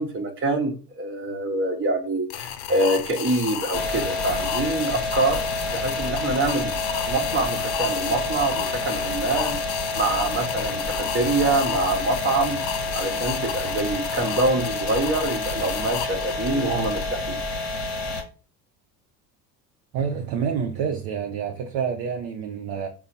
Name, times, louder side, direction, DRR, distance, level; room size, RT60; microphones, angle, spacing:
voice 1, 0.0-5.4 5.7-9.6 9.9-10.8 11.1-12.6 12.9-17.4, right 2 dB, 25° right, 0.9 m, -25 dB
sound 1, 2.3-17.0, left 10 dB, 65° left, 0.6 m, -32 dB
sound 2, 3.7-18.2, left 2 dB, 35° left, 1.0 m, -29 dB
voice 2, 19.9-22.9, right 7 dB, 50° right, 0.6 m, -28 dB
3.9 x 2.1 x 4.1 m
hypercardioid pair, 75°, 50 cm